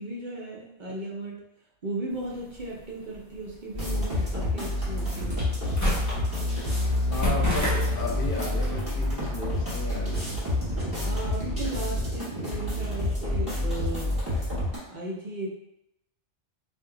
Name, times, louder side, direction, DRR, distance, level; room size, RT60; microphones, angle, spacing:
voice 1, 0.0-1.4 1.8-5.4 11.0-14.1 14.9-15.5, right 2 dB, 55° right, -3 dB, 0.6 m, -36 dB
sound 1, 2.1-11.2, equal, 15° left, 0.9 m, -35 dB
sound 2, 3.7-14.8, left 1 dB, 20° right, 1.4 m, -28 dB
voice 2, 7.1-10.4, left 2 dB, 55° left, -2 dB, 0.7 m, -34 dB
2.8 x 2.6 x 3.7 m, 0.89 s
omnidirectional pair, 1.2 m